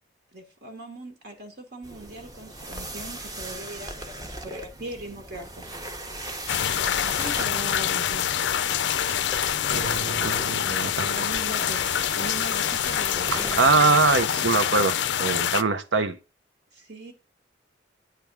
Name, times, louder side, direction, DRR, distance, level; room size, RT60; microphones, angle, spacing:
voice 1, 0.3-5.7 7.1-8.3 11.0-11.9 12.1-14.0 16.7-17.1, right 1 dB, 60° right, 1.3 m, -40 dB
sound 1, 1.8-14.4, right 1 dB, 20° right, 0.8 m, -39 dB
sound 2, 6.5-15.6, left 9 dB, 70° left, 0.4 m, -26 dB
voice 2, 9.7-11.1 13.3-16.2, right 4 dB, 80° right, 0.7 m, -23 dB
9.2 x 3.5 x 5.9 m
head